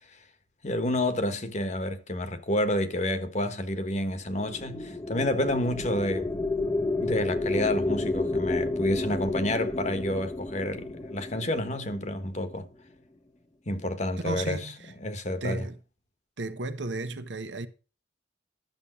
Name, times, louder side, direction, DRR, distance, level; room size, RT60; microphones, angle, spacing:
voice 1, 0.6-6.3 7.0-12.7 13.7-14.6 15.0-15.7, left 1 dB, 40° left, 1.3 m, -29 dB
sound 1, 4.2-12.7, left 2 dB, 20° left, 0.7 m, -31 dB
voice 2, 14.2-14.9 15.4-15.8 16.4-17.7, right 2 dB, 80° right, 1.2 m, -34 dB
12.0 x 7.1 x 6.2 m
head